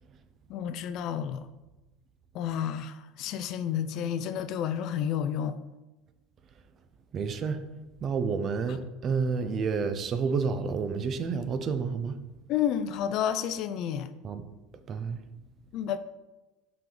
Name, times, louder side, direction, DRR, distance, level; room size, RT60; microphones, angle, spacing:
voice 1, 0.5-1.4 2.3-5.6 12.5-14.1 15.7-16.0, left 9 dB, 55° left, 12 dB, 0.4 m, -30 dB
voice 2, 7.1-7.6 8.0-12.2 14.2-14.4 14.9-15.2, right 5 dB, 40° right, 10 dB, 0.6 m, -29 dB
5.8 x 5.2 x 3.8 m, 1.1 s
supercardioid pair, 115°, 0 cm